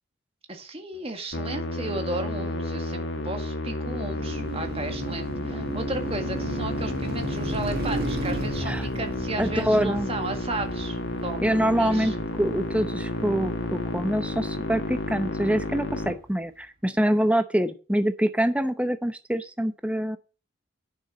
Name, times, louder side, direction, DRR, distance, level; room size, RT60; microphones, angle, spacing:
voice 1, 0.5-11.5 11.8-12.2, right 2 dB, 30° right, 5 dB, 1.8 m, -34 dB
Musical instrument, 1.3-16.1, left 1 dB, 60° left, 2.0 m, -31 dB
Car passing by, 3.8-16.1, right 1 dB, 45° right, 1.7 m, -36 dB
voice 2, 9.4-10.1 11.4-20.2, equal, 5° right, 9 dB, 0.7 m, -25 dB
9.8 x 6.8 x 6.3 m, 0.35 s
head